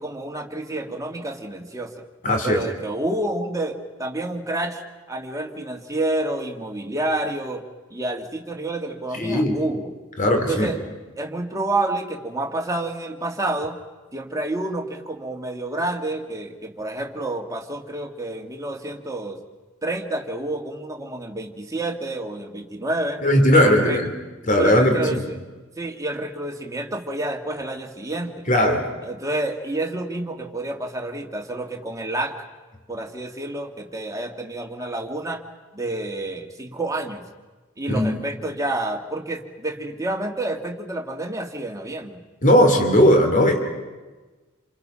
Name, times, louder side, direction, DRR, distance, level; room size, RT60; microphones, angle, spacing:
voice 1, 0.0-2.0 2.4-4.8 5.1-7.6 7.9-9.9 10.3-10.8 11.2-13.8 14.1-19.4 19.8-23.2 23.5-24.0 24.6-25.4 25.8-28.4 29.0-32.5 32.9-35.4 35.7-37.3 37.8-42.2, right 2 dB, 15° right, 2 dB, 2.1 m, -29 dB
voice 2, 2.2-2.6 9.1-9.6 10.2-10.7 23.2-24.1 24.5-25.2 28.5-28.8 37.9-38.2 42.4-43.6, left 1 dB, 40° left, 4 dB, 3.3 m, -18 dB
28.0 x 27.5 x 5.8 m, 1.3 s
head